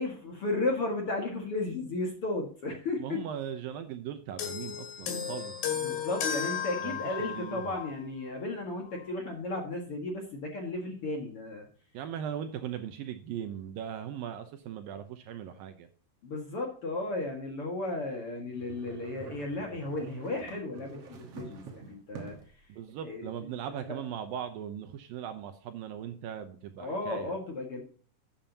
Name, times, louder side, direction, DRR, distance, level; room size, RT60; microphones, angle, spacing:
voice 1, 0.0-3.2 5.8-11.7 16.2-22.4 23.0-23.3 23.9-24.0 26.8-27.8, left 2 dB, 45° left, 1 dB, 2.1 m, -34 dB
voice 2, 3.0-5.5 6.8-7.8 11.9-15.9 22.7-27.4, right 9 dB, 75° right, 8 dB, 2.3 m, -39 dB
sound 1, 4.4-8.0 8.9-9.0, left 8 dB, 80° left, 4.0 m, -34 dB
sound 2, 18.5-22.6, right 5 dB, 55° right, 1.9 m, -47 dB
12.5 x 9.0 x 2.8 m, 0.42 s
omnidirectional pair, 4.6 m